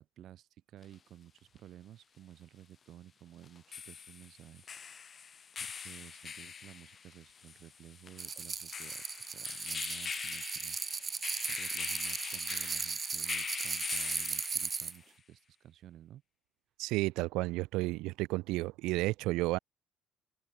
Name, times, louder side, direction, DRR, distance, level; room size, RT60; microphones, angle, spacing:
voice 1, 0.0-5.2 5.6-10.8 11.5-16.2, right 11 dB, 60° right, 2.1 m, -54 dB
sound 1, 0.8-0.9 3.4-15.0, left 6 dB, 35° left, 1.3 m, -43 dB
sound 2, 8.2-15.0, right 5 dB, 30° right, 0.6 m, -37 dB
voice 2, 16.8-19.6, right 20 dB, 85° right, 0.4 m, -32 dB
open air
cardioid pair, 105°, 0 cm